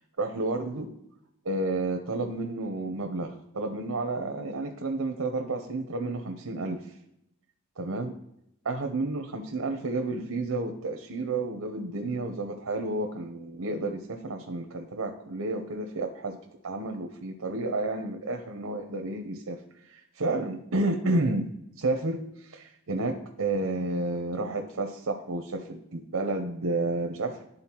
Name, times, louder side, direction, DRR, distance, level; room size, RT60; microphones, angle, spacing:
voice 1, 0.2-0.9 1.4-6.9 7.8-8.2 8.6-16.4 16.6-21.5 21.8-27.5, right 2 dB, 80° right, 4 dB, 0.7 m, -31 dB
11.5 x 3.9 x 2.9 m, 0.79 s
head